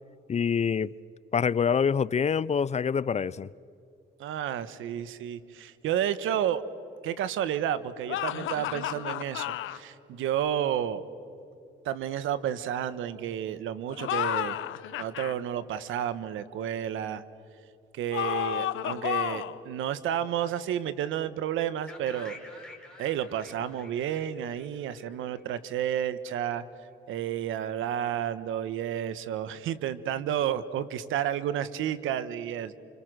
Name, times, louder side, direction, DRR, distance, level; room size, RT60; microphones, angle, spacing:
voice 1, 0.3-0.9 1.3-3.5, left 6 dB, 35° left, 0.5 m, -26 dB
voice 2, 4.2-6.6 7.0-11.0 11.8-14.6 15.0-17.2 17.9-22.4 23.0-26.6 27.1-32.7, right 10 dB, 85° right, 1.3 m, -31 dB
sound 1, 8.1-9.8 13.9-15.3 18.1-19.6, left 13 dB, 85° left, 1.0 m, -31 dB
sound 2, 21.9-25.8, left 2 dB, 5° left, 4.4 m, -49 dB
28.5 x 27.5 x 6.3 m
cardioid pair, 90°, 20 cm